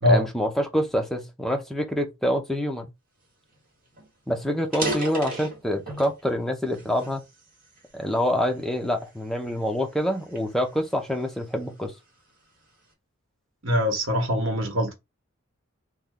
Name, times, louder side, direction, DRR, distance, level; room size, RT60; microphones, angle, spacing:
voice 1, 0.1-2.9 4.3-7.2 7.9-11.9, equal, ahead, 0.5 m, -26 dB
sound 1, 3.5-3.6 3.9-4.1 4.6-6.2 6.7-8.0 8.6-8.9 9.5-11.5, right 2 dB, 40° right, 1.3 m, -34 dB
voice 2, 13.6-14.9, equal, 65° right, 1.1 m, -22 dB
3.1 x 2.2 x 3.6 m
head